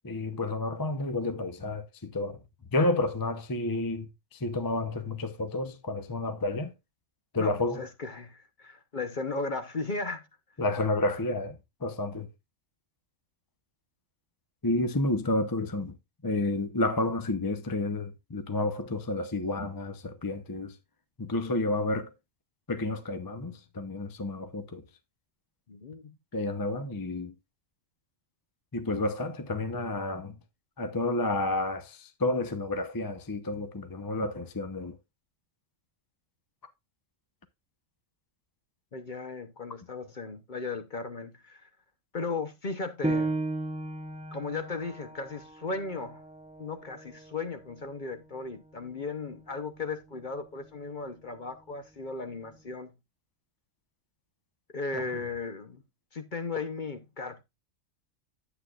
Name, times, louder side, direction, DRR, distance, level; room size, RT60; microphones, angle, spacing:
voice 1, 0.0-2.4 2.7-6.7 7.3-7.8 10.6-12.3 14.6-16.0 16.2-20.7 21.2-22.1 22.7-24.8 26.3-27.3 28.7-30.4 30.8-35.0 54.9-55.0, left 2 dB, 20° left, 0.7 m, -30 dB
voice 2, 7.4-10.3 25.7-26.2 38.9-41.7 42.1-43.4 44.3-46.2 46.6-52.9 54.7-55.8 56.1-57.4, left 3 dB, 40° left, 0.9 m, -36 dB
Piano, 43.0-48.2 48.7-48.8 49.4-49.9, right 2 dB, 10° right, 0.3 m, -35 dB
10.0 x 8.3 x 2.4 m
omnidirectional pair, 1.4 m